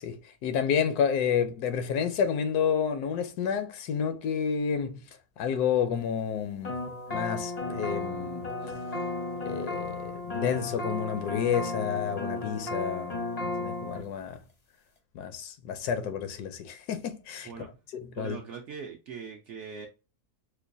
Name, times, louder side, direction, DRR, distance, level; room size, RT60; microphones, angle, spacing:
voice 1, 0.0-5.0 5.4-8.5 9.4-14.4 15.1-17.5 17.9-18.4, left 7 dB, 80° left, 1.1 m, -30 dB
sound 1, 6.6-14.0, left 2 dB, 45° left, 0.5 m, -34 dB
voice 2, 18.1-19.9, right 6 dB, 70° right, 0.7 m, -41 dB
4.5 x 2.2 x 2.5 m
omnidirectional pair, 1.7 m